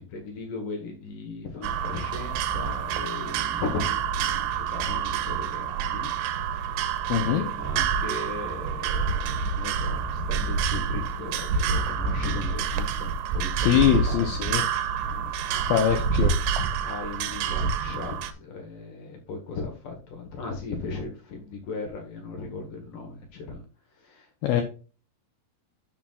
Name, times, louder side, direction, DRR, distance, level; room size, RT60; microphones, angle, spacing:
voice 1, 0.0-6.1 6.7-6.9 7.2-14.6 15.0-15.7 16.8-23.6 24.0-24.6, left 4 dB, 65° left, 3 dB, 2.4 m, -37 dB
sound 1, 1.6-18.3, right 6 dB, 85° right, 2.7 m, -28 dB
voice 2, 7.1-7.4 13.6-14.7 15.7-16.4 24.4-24.6, left 10 dB, 85° left, 6 dB, 2.0 m, -22 dB
11.0 x 6.0 x 2.4 m, 0.35 s
omnidirectional pair, 5.1 m